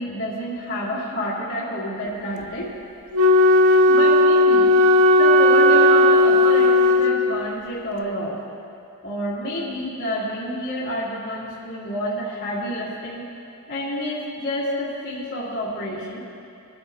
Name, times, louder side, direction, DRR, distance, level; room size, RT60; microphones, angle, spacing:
voice 1, 0.0-2.7 3.9-4.7 5.2-8.4 9.0-13.2 13.7-16.2, equal, 60° left, -10 dB, 2.2 m, -29 dB
Wind instrument woodwind instrument, 3.1-7.6, left 1 dB, 90° right, 0.6 m, -15 dB
25.5 x 9.9 x 2.3 m, 2.5 s
head